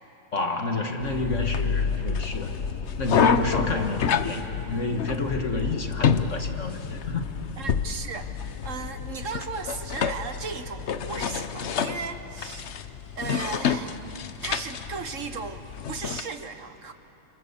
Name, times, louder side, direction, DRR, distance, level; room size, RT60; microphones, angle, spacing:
voice 1, 0.3-2.5 3.0-7.3, left 3 dB, 40° left, 4 dB, 1.7 m, -29 dB
sound 1, 1.0-16.2, left 7 dB, 70° left, 0.6 m, -28 dB
voice 2, 7.6-8.3 8.6-12.7 13.1-14.0 14.4-16.9, right 5 dB, 45° right, 9 dB, 1.2 m, -36 dB
30.0 x 27.5 x 7.2 m, 3.0 s
omnidirectional pair, 2.3 m